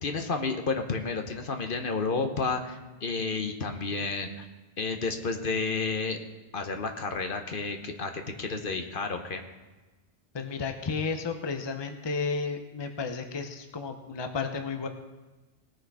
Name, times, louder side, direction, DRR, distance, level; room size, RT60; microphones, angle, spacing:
voice 1, 0.0-4.5 4.8-6.2 6.5-9.4, left 4 dB, 60° left, 6 dB, 1.1 m, -31 dB
voice 2, 10.3-14.9, left 4 dB, 30° left, 6 dB, 0.8 m, -32 dB
18.5 x 6.4 x 4.8 m, 1.2 s
omnidirectional pair, 1.1 m